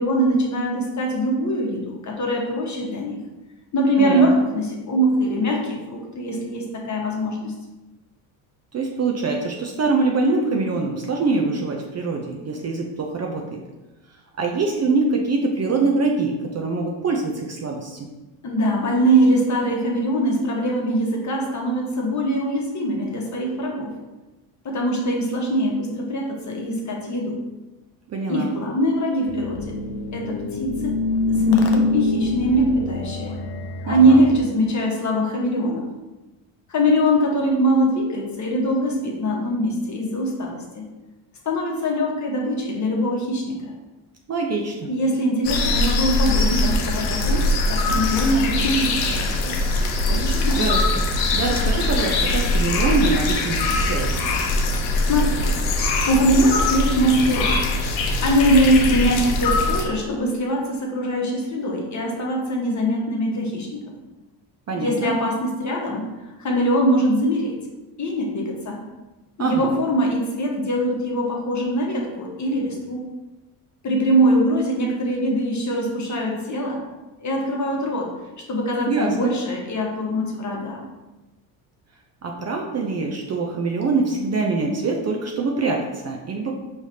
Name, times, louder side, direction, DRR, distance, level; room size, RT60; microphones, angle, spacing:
voice 1, 0.0-3.2 3.7-7.5 18.4-23.9 24.6-27.4 28.3-29.7 30.1-31.0 31.3-33.4 33.8-35.8 36.7-40.8 41.4-43.7 44.9-49.6 50.1-50.6 55.1-55.4 55.8-57.8 58.2-63.9 64.8-67.6 68.0-68.8 69.4-73.1 73.8-76.8 77.2-78.1 78.5-80.8, equal, 35° left, -1 dB, 1.2 m, -22 dB
voice 2, 8.7-13.6 14.4-18.1 28.1-28.5 33.9-34.2 44.3-44.9 50.6-51.0 51.3-54.3 64.7-65.1 69.4-69.7 78.9-79.3 82.2-86.5, right 3 dB, 35° right, 1 dB, 0.6 m, -24 dB
sound 1, 29.3-34.4, left 3 dB, 50° left, 0.8 m, -25 dB
sound 2, 45.4-59.8, left 2 dB, 85° left, 0.8 m, -22 dB
4.7 x 3.3 x 2.7 m, 1.1 s
supercardioid pair, 75°, 49 cm